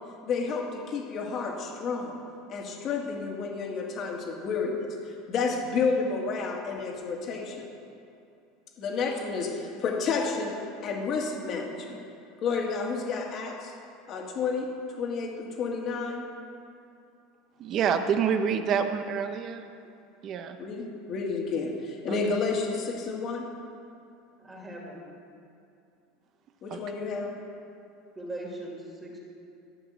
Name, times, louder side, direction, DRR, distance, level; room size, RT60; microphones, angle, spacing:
voice 1, 0.2-2.2 2.5-5.0 5.3-7.7 8.8-10.6 10.8-12.0 12.4-13.7 14.1-14.7 15.0-16.2 20.6-23.5 26.6-27.3, left 4 dB, 35° left, 0 dB, 2.0 m, -30 dB
voice 2, 17.6-19.6 20.2-20.6 22.1-22.2 26.7-26.8, right 7 dB, 35° right, 8 dB, 0.8 m, -27 dB
voice 3, 24.4-25.0 28.2-29.2, right 1 dB, 10° right, -2 dB, 2.3 m, -39 dB
13.5 x 6.0 x 7.9 m, 2.6 s
supercardioid pair, 150°, 0 cm